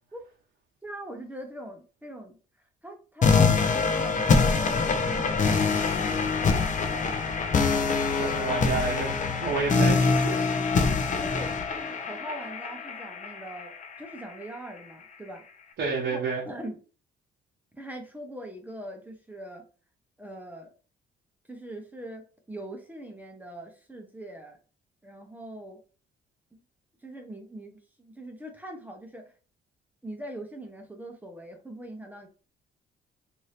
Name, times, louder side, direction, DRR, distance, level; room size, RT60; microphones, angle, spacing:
voice 1, 0.8-2.4 2.8-6.7 11.2-15.4 16.0-16.8 17.7-19.6 20.2-20.7 21.5-24.6 25.0-25.8 26.5-26.6 27.0-29.3 30.0-32.3, right 1 dB, 10° right, 0.8 m, -42 dB
sound 1, 3.2-14.2, left 4 dB, 40° left, 0.6 m, -24 dB
voice 2, 8.2-10.4 15.8-16.4, right 4 dB, 65° right, 0.9 m, -30 dB
2.7 x 2.7 x 3.3 m
cardioid pair, 90°, 20 cm